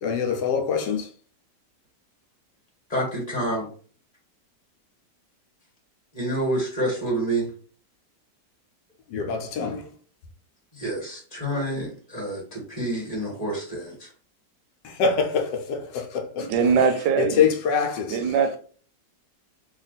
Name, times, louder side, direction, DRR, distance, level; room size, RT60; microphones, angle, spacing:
voice 1, 0.0-1.1 9.1-9.9 14.8-16.7 17.2-18.3, left 6 dB, 80° left, 1.3 m, -25 dB
voice 2, 2.9-3.7 6.1-7.5 9.6-9.8 10.7-14.1, right 1 dB, 20° left, 1.5 m, -28 dB
voice 3, 16.4-17.5 18.1-18.6, right 6 dB, 85° right, 1.3 m, -21 dB
3.5 x 2.3 x 4.0 m
omnidirectional pair, 1.9 m